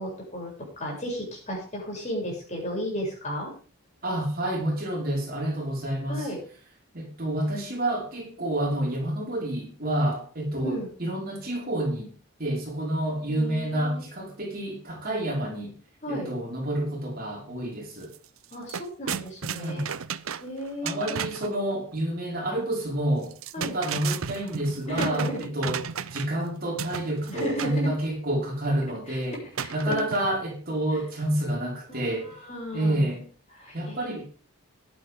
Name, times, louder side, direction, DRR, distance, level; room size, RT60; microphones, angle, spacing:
voice 1, 0.0-3.5 6.1-6.4 10.6-10.9 13.3-14.0 16.0-16.3 18.5-19.8 20.4-21.0 23.5-23.8 24.9-25.4 27.3-27.9 29.3-30.0 31.9-33.1 33.5-34.2, equal, 30° left, -2 dB, 7.6 m, -34 dB
voice 2, 4.0-6.3 6.9-12.1 12.4-15.8 16.1-18.1 19.6-19.9 20.8-25.8 26.1-29.4 29.7-32.3 32.7-33.3 33.7-34.3, right 1 dB, 40° right, -1 dB, 5.2 m, -29 dB
sound 1, 18.0-18.2 18.4-21.6 23.2-26.4 26.8-27.8 29.6-30.5, right 7 dB, 70° right, 0.7 m, -34 dB
15.0 x 11.5 x 3.8 m, 0.40 s
head